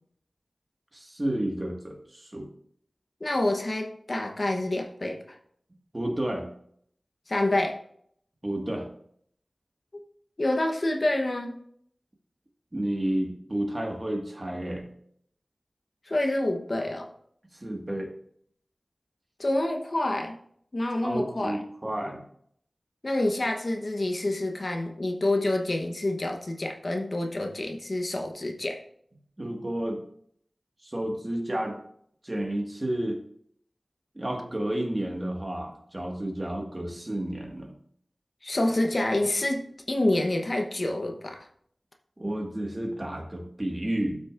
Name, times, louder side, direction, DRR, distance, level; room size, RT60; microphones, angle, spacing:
voice 1, 0.9-2.5 5.9-6.5 8.4-8.9 12.7-14.9 17.6-18.1 21.0-22.2 29.4-30.0 30.8-31.8 32.2-33.2 34.2-37.7 42.2-44.2, right 1 dB, 30° right, 2 dB, 1.7 m, -31 dB
voice 2, 3.2-5.2 7.3-7.8 10.4-11.6 16.1-17.1 19.4-20.4 20.7-21.6 23.0-28.8 38.4-39.6 39.9-41.5, left 1 dB, 55° left, 3 dB, 1.0 m, -27 dB
12.0 x 6.1 x 2.5 m, 0.66 s
wide cardioid pair, 55°, 0 cm